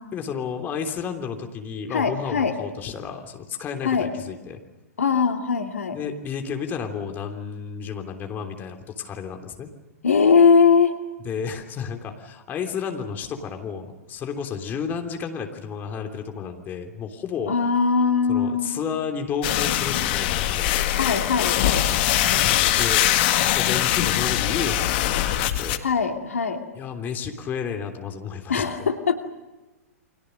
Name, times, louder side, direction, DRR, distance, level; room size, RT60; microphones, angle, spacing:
voice 1, 0.1-4.6 5.9-9.7 11.2-17.5 18.3-21.0 22.7-23.0 23.5-25.9 26.7-28.7, left 6 dB, 20° left, 4 dB, 3.3 m, -32 dB
voice 2, 1.9-2.5 3.8-4.1 5.0-6.0 10.0-11.0 17.5-18.8 20.9-22.5 25.8-26.6 28.5-29.2, left 5 dB, 65° left, 5 dB, 2.6 m, -21 dB
sound 1, 19.4-25.8, left 13 dB, 40° left, 1.9 m, -22 dB
30.0 x 24.5 x 6.6 m, 1.1 s
figure-of-eight pair, 110°, 8 cm